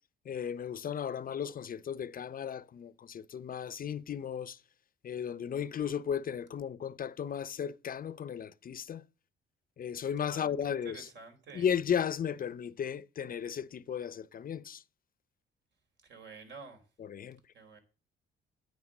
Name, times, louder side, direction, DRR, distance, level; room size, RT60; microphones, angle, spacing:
voice 1, 0.3-4.6 5.0-9.0 9.8-11.1 11.5-14.8 17.0-17.4, left 8 dB, 45° left, 0.6 m, -35 dB
voice 2, 10.8-11.7 16.0-16.8 17.5-17.8, right 4 dB, 65° right, 4.2 m, -49 dB
9.6 x 8.7 x 6.4 m
cardioid pair, 90°, 20 cm